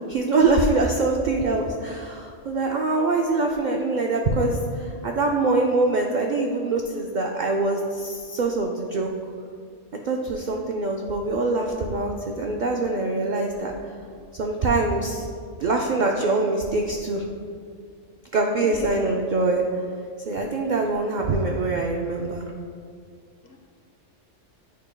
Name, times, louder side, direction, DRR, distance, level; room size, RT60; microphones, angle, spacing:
voice 1, 0.1-9.1 10.0-13.7 14.4-15.3 15.6-17.3 18.3-19.6 20.3-22.5, right 3 dB, 70° right, 1 dB, 0.4 m, -24 dB
voice 2, 18.6-19.2 20.5-20.7 21.0-21.2 23.4-23.6, left 3 dB, 60° left, 1 dB, 1.0 m, -41 dB
9.3 x 4.9 x 2.2 m, 2.2 s
omnidirectional pair, 1.3 m